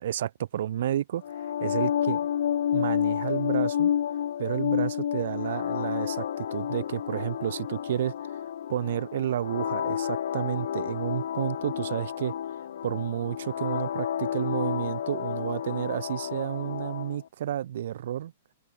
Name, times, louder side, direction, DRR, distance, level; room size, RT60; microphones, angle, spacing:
voice 1, 0.0-2.2 2.7-3.9 4.4-12.3 12.8-18.3, right 11 dB, 70° right, 1.2 m, -31 dB
sound 1, 1.2-17.2, left 9 dB, 75° left, 0.7 m, -30 dB
hypercardioid pair, 140°, 0 cm